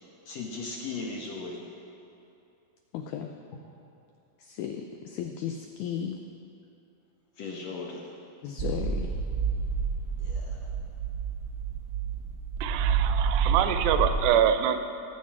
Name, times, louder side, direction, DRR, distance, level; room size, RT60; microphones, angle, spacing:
voice 1, 0.3-1.6 7.4-8.1 10.2-10.6, left 3 dB, 65° left, -2 dB, 1.8 m, -37 dB
voice 2, 2.9-3.3 4.4-6.2 8.4-9.1, left 8 dB, 85° left, 5 dB, 1.7 m, -35 dB
sound 1, 8.6-14.1, right 6 dB, 55° right, 1.1 m, -29 dB
voice 3, 12.6-14.8, right 9 dB, 85° right, 9 dB, 2.4 m, -25 dB
18.0 x 7.5 x 4.7 m, 2.7 s
omnidirectional pair, 4.1 m